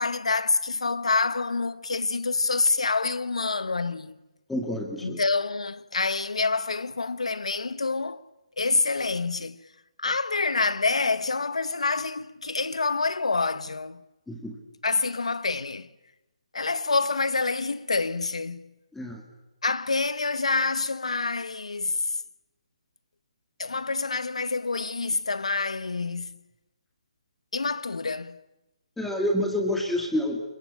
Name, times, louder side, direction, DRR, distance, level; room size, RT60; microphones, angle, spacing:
voice 1, 0.0-4.2 5.0-8.2 8.6-9.6 10.0-14.0 14.8-15.9 16.5-18.7 19.6-22.2 23.6-26.4 27.5-28.4, left 3 dB, 90° left, 1.4 m, -27 dB
voice 2, 4.5-5.2 14.3-14.6 18.9-19.2 29.0-30.4, left 1 dB, 5° left, 2.0 m, -28 dB
28.0 x 22.0 x 8.7 m
hypercardioid pair, 155°, 3 cm